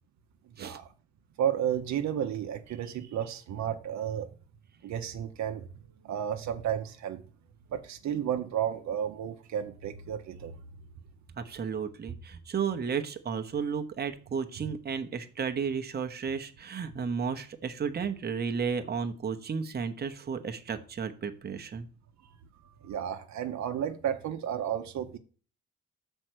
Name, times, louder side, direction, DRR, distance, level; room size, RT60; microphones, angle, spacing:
voice 1, 0.6-0.9 1.4-4.3 4.8-5.7 6.0-7.2 7.7-10.6 22.2-22.3 22.8-25.2, right 9 dB, 65° right, 0.8 m, -32 dB
voice 2, 11.3-21.9, right 6 dB, 35° right, 0.9 m, -33 dB
6.3 x 4.5 x 6.3 m
cardioid pair, 90°, 30 cm